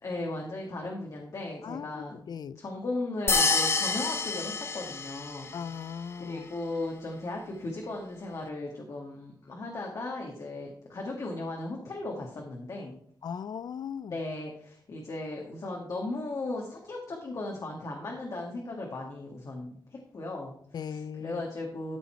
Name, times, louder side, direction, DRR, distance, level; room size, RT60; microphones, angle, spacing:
voice 1, 0.0-2.2 2.6-5.5 5.9-13.0 14.1-22.0, left 2 dB, 50° left, 1.8 m, -37 dB
voice 2, 1.6-2.6 5.5-6.5 13.2-14.2 20.7-21.4, left 7 dB, 70° left, 0.4 m, -38 dB
sound 1, 3.3-5.6, left 4 dB, 35° left, 0.9 m, -27 dB
13.5 x 5.6 x 4.5 m
wide cardioid pair, 135°, 7 cm